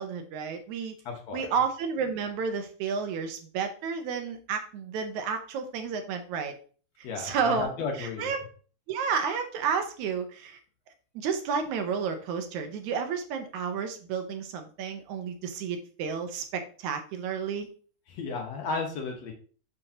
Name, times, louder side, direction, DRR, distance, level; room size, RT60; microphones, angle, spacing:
voice 1, 0.0-0.9 1.3-6.5 7.2-7.7 8.0-8.4 8.9-10.6 11.2-17.7, right 6 dB, 80° right, 6 dB, 2.3 m, -31 dB
voice 2, 1.1-1.5 7.0-8.3 18.1-19.3, left 4 dB, 65° left, 2 dB, 2.5 m, -34 dB
6.6 x 6.2 x 2.8 m, 0.41 s
omnidirectional pair, 3.4 m